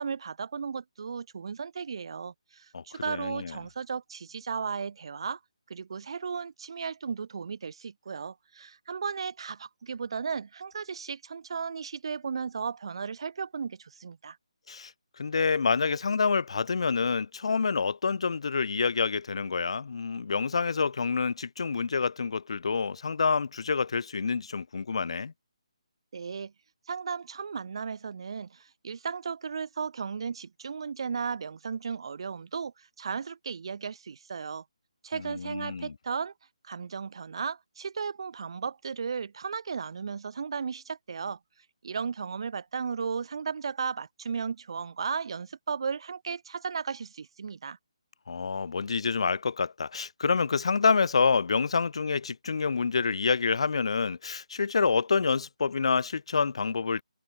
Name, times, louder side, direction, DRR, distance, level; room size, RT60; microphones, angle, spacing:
voice 1, 0.0-5.4 5.7-14.4 26.1-26.5 26.9-34.6 35.0-36.3 36.6-41.4 41.8-47.8, right 6 dB, 50° right, 3.6 m, -35 dB
voice 2, 2.7-3.5 14.7-14.9 15.2-25.3 35.2-35.9 48.3-57.0, left 5 dB, 60° left, 1.9 m, -27 dB
hypercardioid pair, 165°, 3 cm